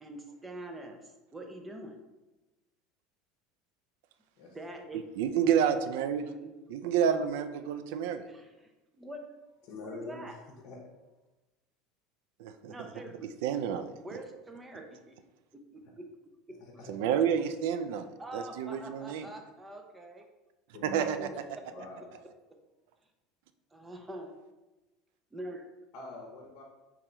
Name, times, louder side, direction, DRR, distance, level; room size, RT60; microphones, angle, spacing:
voice 1, 0.0-2.0 4.5-5.0 6.2-6.5 8.3-9.3 9.8-10.4 12.7-13.3 14.0-15.2 15.5-16.1 16.5-16.6 18.2-20.2 23.7-24.3 25.3-25.7, right 1 dB, 10° right, 3 dB, 0.6 m, -45 dB
voice 2, 4.4-4.8 9.6-10.4 10.6-10.8 16.6-16.9 20.7-21.4 21.7-22.1 25.9-26.6, left 2 dB, 55° left, -1 dB, 0.8 m, -44 dB
voice 3, 5.2-6.2 6.7-8.3 12.4-12.9 13.4-13.9 16.9-18.1 18.3-19.3 20.8-21.3, right 8 dB, 75° right, 9 dB, 0.4 m, -29 dB
3.7 x 3.0 x 4.4 m, 1.1 s
supercardioid pair, 145°, 0 cm